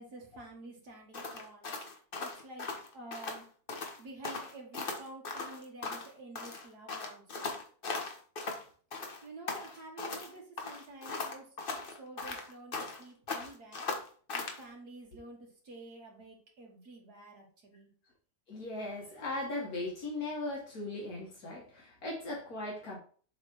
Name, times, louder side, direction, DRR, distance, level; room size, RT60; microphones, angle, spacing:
voice 1, 0.0-1.7 2.2-3.5 4.0-7.6 9.2-11.5 11.9-13.8 14.3-17.9, right 2 dB, 80° right, -1 dB, 2.4 m, -50 dB
sound 1, 1.1-3.4 3.7-4.0 4.2-6.1 6.4-8.6 8.9-10.3 10.6-13.0 13.3-14.6, left 3 dB, 40° left, 1.2 m, -38 dB
voice 2, 18.5-23.0, left 2 dB, 70° left, -3 dB, 2.0 m, -38 dB
7.5 x 3.5 x 4.6 m, 0.44 s
omnidirectional pair, 1.7 m